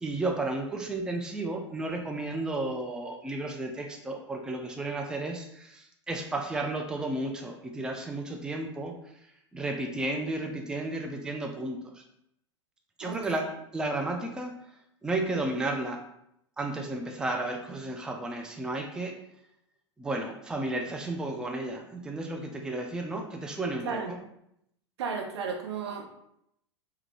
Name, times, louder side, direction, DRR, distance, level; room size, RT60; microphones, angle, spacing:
voice 1, 0.0-8.9 9.5-12.0 13.0-13.5 13.7-14.5 15.0-16.0 16.6-19.1 20.0-24.2, right 2 dB, 5° right, 2 dB, 0.4 m, -33 dB
voice 2, 13.0-13.4 23.8-24.2 25.0-26.1, right 5 dB, 65° right, 3 dB, 0.6 m, -34 dB
3.6 x 2.3 x 3.0 m, 0.76 s
figure-of-eight pair, 90°, 15 cm